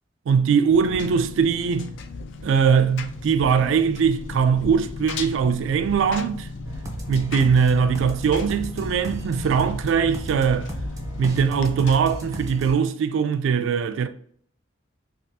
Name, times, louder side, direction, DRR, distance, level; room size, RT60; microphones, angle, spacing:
voice 1, 0.3-1.9 2.4-6.5 7.1-10.7 11.2-14.1, right 6 dB, 75° right, 0.3 m, -21 dB
Engine, 0.7-12.3, left 3 dB, 65° left, 0.4 m, -36 dB
Dance Future Runway Beat, 6.6-12.7, right 1 dB, 15° right, 0.5 m, -35 dB
3.3 x 2.3 x 2.7 m
head